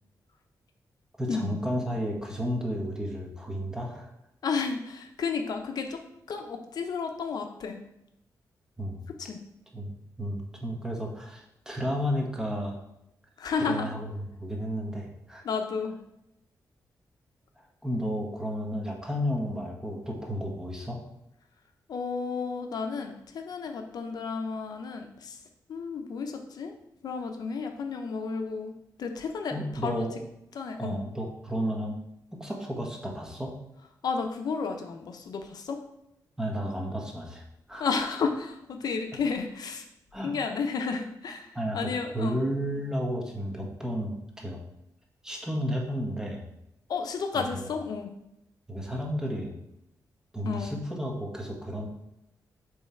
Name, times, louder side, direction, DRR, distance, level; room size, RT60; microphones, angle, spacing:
voice 1, 1.2-4.1 8.8-9.0 9.7-12.8 13.6-15.4 17.8-21.0 29.5-30.1 30.8-32.0 32.3-33.6 36.4-37.4 37.7-37.9 40.1-40.4 41.5-44.6 45.2-46.4 47.3-47.6 48.7-49.5 50.3-51.9, equal, 10° right, 0 dB, 1.2 m, -32 dB
voice 2, 4.4-6.0 6.3-7.8 9.1-9.4 13.4-13.9 15.4-16.0 21.9-25.4 25.7-26.7 27.0-28.7 29.0-29.5 29.8-30.1 30.5-31.0 34.0-35.8 37.7-39.8 40.2-42.4 46.9-48.1 50.4-50.8, left 5 dB, 65° left, 5 dB, 0.6 m, -32 dB
7.2 x 3.2 x 4.3 m, 0.83 s
wide cardioid pair, 120°, 7 cm